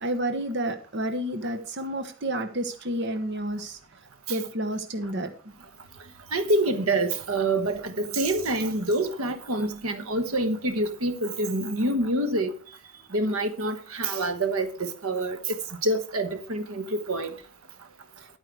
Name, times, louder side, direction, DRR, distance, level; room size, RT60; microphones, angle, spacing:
voice 1, 0.0-3.8 4.3-5.3, right 1 dB, 50° right, 1.1 m, -30 dB
voice 2, 6.3-12.5 13.1-17.4, right 2 dB, 80° right, 1.2 m, -26 dB
11.0 x 9.0 x 4.7 m
head